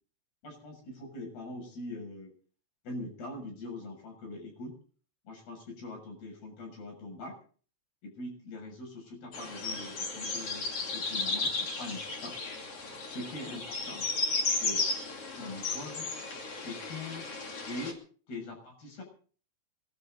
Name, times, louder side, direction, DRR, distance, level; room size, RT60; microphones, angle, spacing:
voice 1, 0.4-2.3 2.8-4.8 5.3-7.4 8.0-12.4 13.0-14.1 14.5-14.9 15.4-16.1 16.6-17.3 17.7-18.0 18.3-19.0, left 2 dB, 60° left, 3 dB, 8.8 m, -42 dB
sound 1, 9.3-17.9, left 3 dB, 35° left, 3.2 m, -34 dB
28.0 x 12.5 x 4.0 m, 0.43 s
omnidirectional pair, 5.1 m